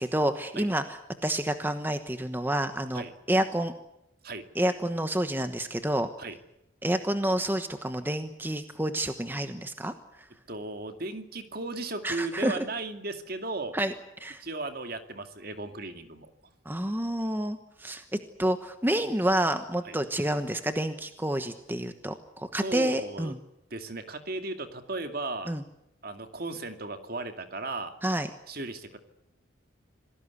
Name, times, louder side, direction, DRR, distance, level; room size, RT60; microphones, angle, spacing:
voice 1, 0.0-3.7 4.5-6.1 6.8-9.9 12.0-12.6 13.7-13.9 14.2-14.4 16.6-18.0 18.4-23.4 25.5-25.6 28.0-28.3, right 1 dB, 10° right, 8 dB, 1.1 m, -29 dB
voice 2, 10.5-13.8 14.4-16.3 19.8-20.0 22.5-23.3 23.7-25.5 26.0-27.9 28.5-29.0, right 2 dB, 50° right, 7 dB, 2.4 m, -36 dB
27.0 x 19.0 x 8.4 m, 0.85 s
head